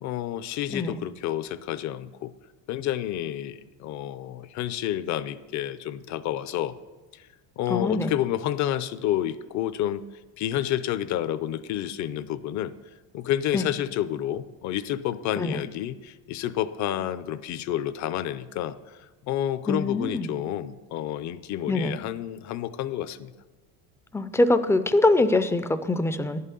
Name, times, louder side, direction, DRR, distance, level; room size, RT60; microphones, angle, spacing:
voice 1, 0.0-2.3 2.7-6.8 7.1-7.3 7.6-12.8 13.1-23.3, left 12 dB, 55° left, 14 dB, 0.6 m, -30 dB
voice 2, 7.7-8.1 13.5-13.6 15.4-15.6 19.7-20.3 21.7-21.9 24.1-26.4, left 2 dB, 10° left, 11 dB, 0.4 m, -23 dB
11.0 x 5.7 x 8.3 m, 1.2 s
cardioid pair, 135°, 35 cm